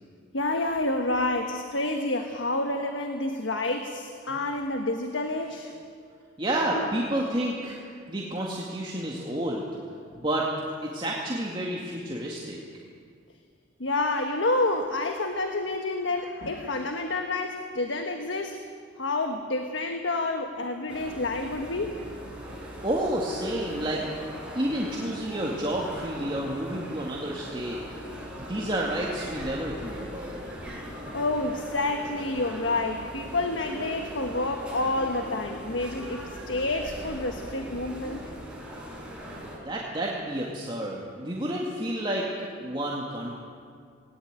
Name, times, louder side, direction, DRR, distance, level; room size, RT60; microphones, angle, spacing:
voice 1, 0.3-5.8 6.7-6.9 13.8-18.6 19.0-22.0 31.1-38.2, left 2 dB, 75° left, 5 dB, 1.4 m, -29 dB
voice 2, 6.4-7.8 8.1-9.7 10.2-12.6 22.8-24.1 24.5-27.8 28.5-30.3 39.6-42.3 42.6-43.3, right 1 dB, 25° right, -3 dB, 2.0 m, -30 dB
sound 1, 20.9-39.6, equal, 5° right, 6.9 m, -40 dB
19.0 x 18.5 x 9.0 m, 2.2 s
head